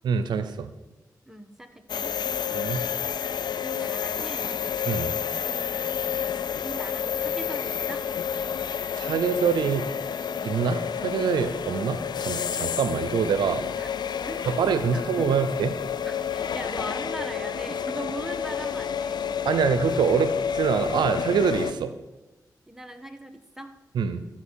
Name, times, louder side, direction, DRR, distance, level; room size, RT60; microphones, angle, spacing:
voice 1, 0.0-0.7 2.5-2.8 4.9-5.1 8.9-9.9 10.4-13.7 14.5-15.7 19.4-21.9 23.9-24.3, right 6 dB, 90° right, 12 dB, 0.6 m, -25 dB
voice 2, 1.3-2.2 3.5-4.7 5.4-6.4 6.6-8.1 13.7-13.9 14.2-15.6 16.0-19.2 22.7-23.8, right 1 dB, 5° right, 7 dB, 1.3 m, -40 dB
sound 1, 1.9-21.7, left 7 dB, 75° left, 0.5 m, -30 dB
13.5 x 5.8 x 6.3 m, 1.1 s
cardioid pair, 45°, 7 cm